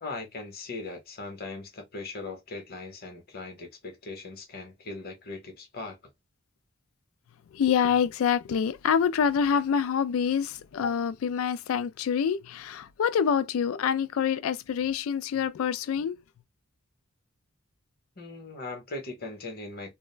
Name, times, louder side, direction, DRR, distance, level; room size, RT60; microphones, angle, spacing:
voice 1, 0.0-6.0 18.2-19.9, left 3 dB, 50° left, 0.9 m, -39 dB
voice 2, 7.5-16.2, left 7 dB, 75° left, 0.3 m, -26 dB
2.4 x 2.1 x 3.1 m
head